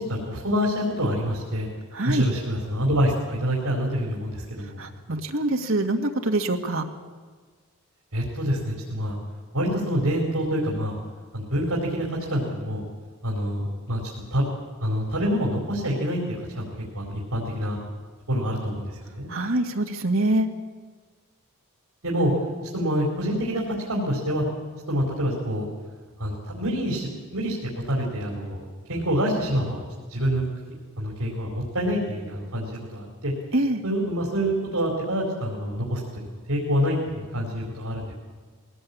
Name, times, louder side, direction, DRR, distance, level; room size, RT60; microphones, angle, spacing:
voice 1, 0.0-1.7 2.0-4.9 8.1-9.2 9.5-10.9 11.3-12.8 13.2-14.5 14.8-17.8 18.3-19.3 22.0-22.3 22.7-24.4 24.9-25.7 26.2-29.8 30.1-30.4 31.0-33.3 33.8-38.1, equal, 80° right, -3 dB, 4.5 m, -26 dB
voice 2, 1.9-2.2 4.8-6.8 19.3-20.5 33.5-33.8, right 1 dB, 65° right, 3 dB, 2.0 m, -24 dB
20.5 x 17.5 x 8.6 m, 1.5 s
head